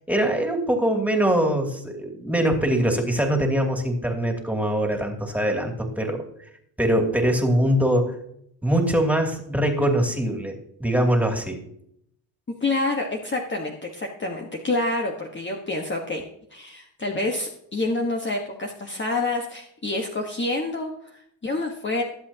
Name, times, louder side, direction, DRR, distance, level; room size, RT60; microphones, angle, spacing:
voice 1, 0.1-6.2 6.8-8.1 8.6-11.6, right 1 dB, 5° right, 2 dB, 2.7 m, -23 dB
voice 2, 12.6-16.2 16.5-22.0, left 2 dB, 25° left, 1 dB, 1.4 m, -27 dB
22.0 x 7.9 x 2.9 m, 0.73 s
cardioid pair, 90°, 49 cm